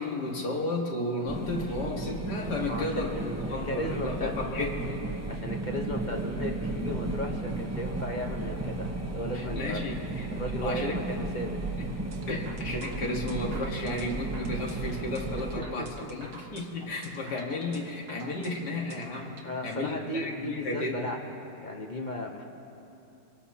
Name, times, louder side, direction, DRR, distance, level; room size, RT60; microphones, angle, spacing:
voice 1, 0.0-3.2 3.5-4.9 9.3-10.3 10.6-11.0 12.3-21.0, left 2 dB, 70° left, 0 dB, 2.3 m, -33 dB
sound 1, 1.3-15.6, right 2 dB, 15° right, 0.5 m, -34 dB
voice 2, 1.7-2.0 2.7-9.9 10.3-11.6 15.4-15.5 15.8-15.9 19.4-22.4, left 1 dB, 35° left, 1 dB, 0.9 m, -36 dB
sound 2, 12.1-19.5, right 3 dB, 85° right, 2.0 m, -48 dB
26.0 x 18.0 x 2.8 m, 2.8 s
omnidirectional pair, 1.9 m